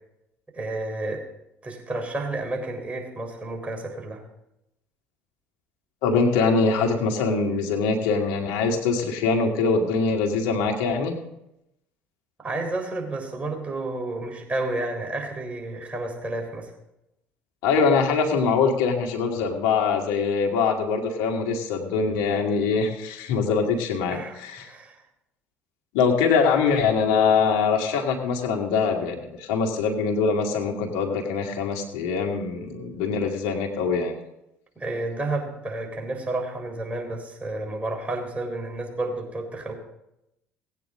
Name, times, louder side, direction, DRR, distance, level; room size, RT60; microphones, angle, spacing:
voice 1, 0.5-1.3 1.6-4.2 12.4-16.7 24.1-25.0 34.8-39.7, right 2 dB, 20° right, 1 dB, 3.9 m, -31 dB
voice 2, 6.0-11.2 17.6-24.7 25.9-34.1, left 5 dB, 75° left, 2 dB, 2.1 m, -23 dB
18.0 x 9.1 x 3.8 m, 0.85 s
hypercardioid pair, 65°, 6 cm